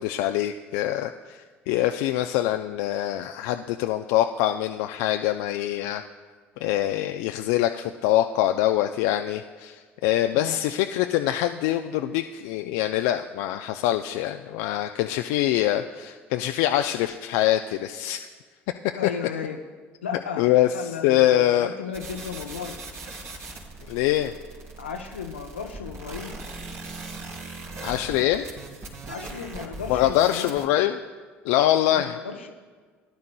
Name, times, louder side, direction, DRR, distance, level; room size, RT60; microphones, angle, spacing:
voice 1, 0.0-6.0 6.6-18.3 19.0-19.1 20.4-20.7 21.0-21.7 23.9-24.3 27.8-28.5 29.9-31.0 31.5-32.2, left 13 dB, 70° left, 7 dB, 0.3 m, -24 dB
voice 2, 18.9-19.6 20.0-22.8 24.8-26.3 29.1-30.6 31.5-32.5, left 6 dB, 90° left, 5 dB, 0.7 m, -35 dB
sound 1, 21.9-30.7, right 3 dB, 50° right, 2.8 m, -39 dB
17.0 x 10.5 x 2.2 m, 1.5 s
hypercardioid pair, 60°, 6 cm